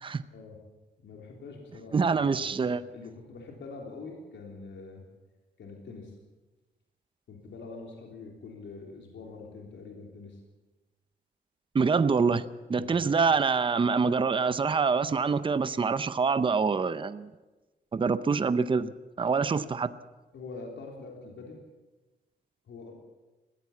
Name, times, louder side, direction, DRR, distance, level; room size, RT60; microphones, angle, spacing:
voice 1, 1.0-5.0 5.6-6.2 7.3-10.4 12.7-13.0 20.3-21.6 22.7-22.9, left 4 dB, 85° left, 0 dB, 3.6 m, -44 dB
voice 2, 1.9-2.8 11.7-12.4 12.7-17.3 17.9-18.9 19.2-19.9, right 5 dB, 25° right, 14 dB, 0.7 m, -25 dB
20.0 x 15.0 x 8.5 m, 1.2 s
wide cardioid pair, 145°, 19 cm